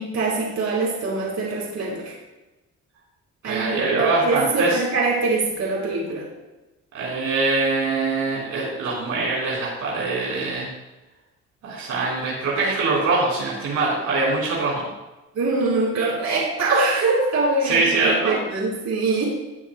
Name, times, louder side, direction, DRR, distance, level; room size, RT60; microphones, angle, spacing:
voice 1, 0.0-2.1 3.4-6.2 15.3-19.2, right 3 dB, 65° right, -3 dB, 4.2 m, -23 dB
voice 2, 3.4-4.8 6.9-10.7 11.6-14.8 17.6-18.3, right 3 dB, 85° right, -6 dB, 4.0 m, -23 dB
18.0 x 9.2 x 2.2 m, 1.1 s
cardioid pair, 90°, 30 cm